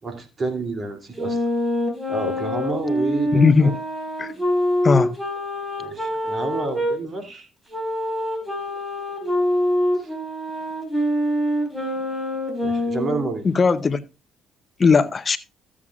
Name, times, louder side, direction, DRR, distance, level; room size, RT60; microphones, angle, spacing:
voice 1, 0.0-1.4 2.1-3.7 5.8-7.5 10.0-10.1 12.6-13.4, right 3 dB, 40° right, 2.7 m, -29 dB
sound 1, 1.2-7.0 7.7-13.3, equal, 15° right, 4.8 m, -25 dB
voice 2, 3.3-3.8 4.2-4.3 4.8-5.1 13.4-14.0 14.8-15.4, left 5 dB, 40° left, 0.6 m, -17 dB
15.0 x 7.3 x 2.4 m
supercardioid pair, 65°, 0 cm